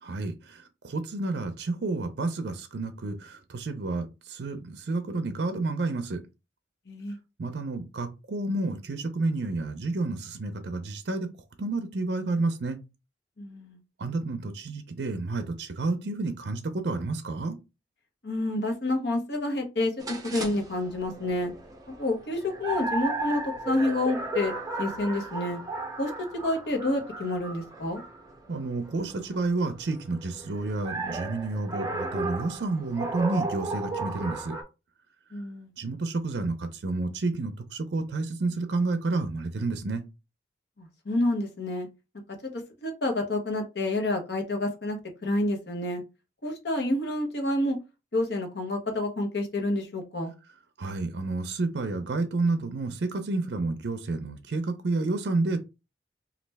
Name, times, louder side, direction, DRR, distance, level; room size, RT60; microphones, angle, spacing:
voice 1, 0.0-6.2 7.4-11.3 11.6-12.8 14.0-17.6 28.5-34.6 35.8-40.0 50.8-55.6, right 3 dB, 65° right, 0.5 m, -30 dB
voice 2, 6.9-7.2 13.4-13.8 18.2-21.5 22.0-24.5 24.8-25.6 26.0-26.1 26.4-28.0 35.3-35.7 40.8-41.9 42.4-46.0 46.4-47.8 48.1-50.3, left 1 dB, 65° left, 0.9 m, -29 dB
sound 1, 20.0-34.6, right 3 dB, 20° right, 0.7 m, -35 dB
3.1 x 2.4 x 3.3 m
head